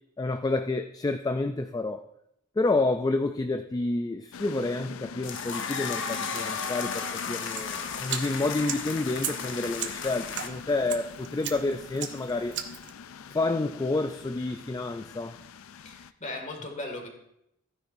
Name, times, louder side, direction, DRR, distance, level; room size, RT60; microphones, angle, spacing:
voice 1, 0.2-2.1 2.6-12.6 13.3-15.4, left 2 dB, 20° left, 8 dB, 0.3 m, -29 dB
sound 1, 4.3-16.1, left 6 dB, 80° left, 0.4 m, -44 dB
sound 2, 5.2-10.5, left 6 dB, 65° left, 0.9 m, -34 dB
sound 3, 7.6-12.9, right 9 dB, 60° right, 0.8 m, -38 dB
voice 2, 15.8-17.1, left 2 dB, 35° left, 3 dB, 2.1 m, -37 dB
15.0 x 9.9 x 2.6 m, 0.78 s
head